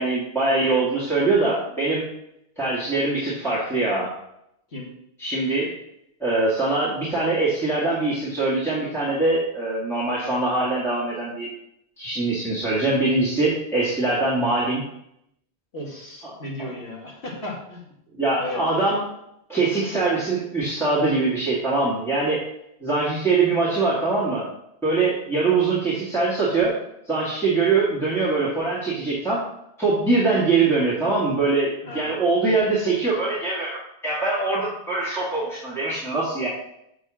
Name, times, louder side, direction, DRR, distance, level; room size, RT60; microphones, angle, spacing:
voice 1, 0.0-2.0 2.6-4.1 5.2-5.7 6.2-11.5 12.0-14.8 18.2-19.0 19.5-22.4 22.8-24.5 24.8-26.8 27.0-29.4 29.8-36.5, right 3 dB, ahead, -9 dB, 2.0 m, -23 dB
voice 2, 15.7-17.8 18.3-18.6 31.8-32.2, left 1 dB, 75° left, -3 dB, 2.3 m, -35 dB
6.7 x 4.7 x 6.2 m, 0.78 s
omnidirectional pair, 1.1 m